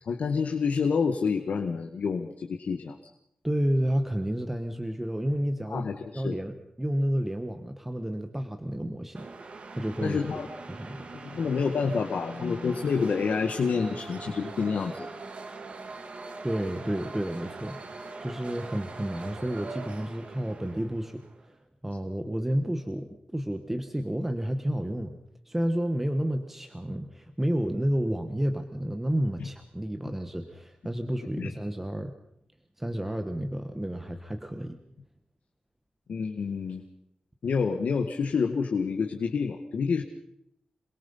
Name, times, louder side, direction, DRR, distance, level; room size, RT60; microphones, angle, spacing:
voice 1, 0.1-3.0 5.7-6.4 10.0-10.5 11.2-15.1 31.4-31.5 36.1-36.8 37.4-40.0, left 5 dB, 80° left, 5 dB, 1.8 m, -28 dB
voice 2, 3.4-5.8 6.1-6.5 6.8-10.2 10.7-11.0 16.4-21.2 21.8-25.2 25.4-32.1 32.8-34.8, equal, 10° right, 6 dB, 1.5 m, -30 dB
sound 1, 9.1-21.4, right 3 dB, 50° right, 2.5 m, -42 dB
27.5 x 22.0 x 5.7 m, 0.77 s
wide cardioid pair, 155°, 3 cm